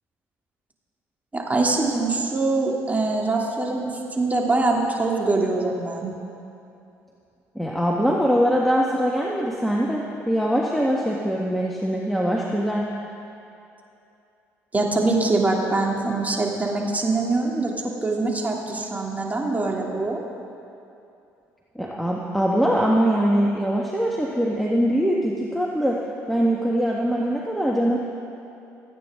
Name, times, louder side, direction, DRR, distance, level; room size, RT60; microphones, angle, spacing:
voice 1, 1.3-6.1 14.7-17.7 18.0-20.2, right 3 dB, 20° right, -1 dB, 2.8 m, -23 dB
voice 2, 7.5-12.9 21.7-28.0, equal, ahead, -3 dB, 1.5 m, -22 dB
27.5 x 9.2 x 3.7 m, 2.7 s
hypercardioid pair, 60°, 7 cm